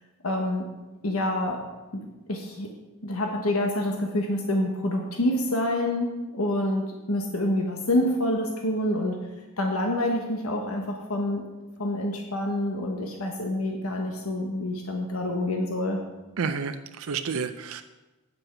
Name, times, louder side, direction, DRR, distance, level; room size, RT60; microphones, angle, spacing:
voice 1, 0.2-0.6 1.0-1.6 1.9-2.7 3.0-9.2 9.6-11.4 11.8-16.0, left 1 dB, 85° left, 2 dB, 1.3 m, -27 dB
voice 2, 16.4-17.8, right 5 dB, 75° right, 9 dB, 0.5 m, -30 dB
9.1 x 7.9 x 6.0 m, 1.1 s
head